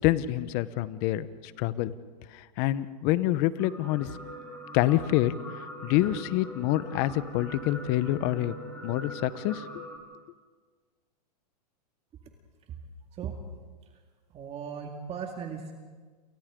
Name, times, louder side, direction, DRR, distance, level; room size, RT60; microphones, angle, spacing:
voice 1, 0.0-1.9 2.3-4.1 4.7-5.3 5.8-8.5 8.8-9.7, left 15 dB, 45° left, 15 dB, 1.1 m, -27 dB
sound 1, 3.6-10.0, equal, 10° left, 7.7 m, -42 dB
voice 2, 14.3-15.7, right 7 dB, 30° right, 2 dB, 2.2 m, -37 dB
29.0 x 29.0 x 3.9 m, 1.5 s
hypercardioid pair, 120°, 21 cm